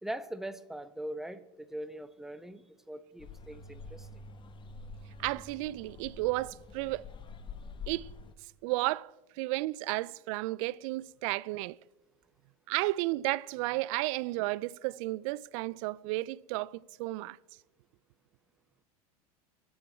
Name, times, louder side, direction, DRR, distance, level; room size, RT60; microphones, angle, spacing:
voice 1, 0.0-4.1, right 1 dB, ahead, 0.8 m, -41 dB
sound 1, 3.2-8.3, left 4 dB, 25° left, 1.1 m, -47 dB
voice 2, 5.2-7.1 7.9-8.1 8.6-11.8 12.7-17.4, right 20 dB, 60° right, 0.4 m, -33 dB
22.0 x 8.0 x 4.3 m
hypercardioid pair, 95°, 19 cm